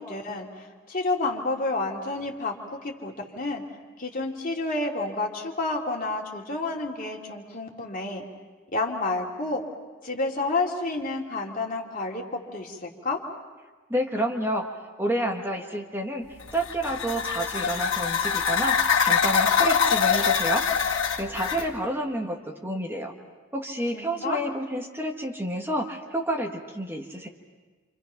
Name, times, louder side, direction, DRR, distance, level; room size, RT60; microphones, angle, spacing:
voice 1, 0.0-3.6 4.0-8.2 8.7-9.6 10.0-13.2 23.9-24.4, left 2 dB, 45° left, -1 dB, 3.0 m, -30 dB
voice 2, 13.9-14.7 15.0-16.2 16.5-23.1 23.5-27.3, right 1 dB, 10° right, 1 dB, 1.6 m, -29 dB
sound 1, 16.4-21.7, left 7 dB, 85° left, 1.9 m, -24 dB
29.0 x 27.5 x 5.8 m, 1.3 s
head